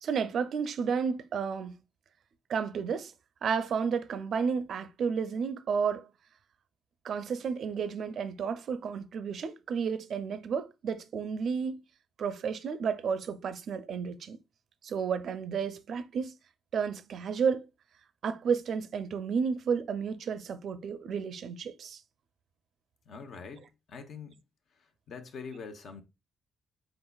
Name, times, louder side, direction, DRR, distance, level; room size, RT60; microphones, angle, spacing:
voice 1, 0.0-1.7 2.5-3.1 3.4-6.1 7.0-11.8 12.2-14.4 14.8-16.4 16.7-17.7 18.2-22.0, right 6 dB, 60° right, 0.5 m, -32 dB
voice 2, 23.0-24.4 24.7-26.0, left 5 dB, 65° left, 0.9 m, -44 dB
4.6 x 3.9 x 2.3 m
cardioid pair, 90°, 0 cm